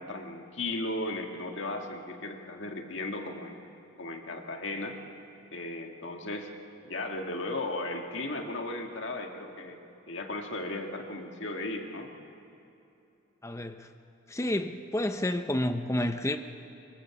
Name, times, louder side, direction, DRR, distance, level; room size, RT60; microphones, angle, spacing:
voice 1, 0.0-3.6 4.0-5.0 5.5-6.5 6.8-9.8 10.1-12.2, left 2 dB, 60° left, 3 dB, 1.9 m, -36 dB
voice 2, 13.4-13.9 14.3-16.4, left 1 dB, 15° left, 7 dB, 0.6 m, -30 dB
24.0 x 23.5 x 7.1 m, 2.8 s
head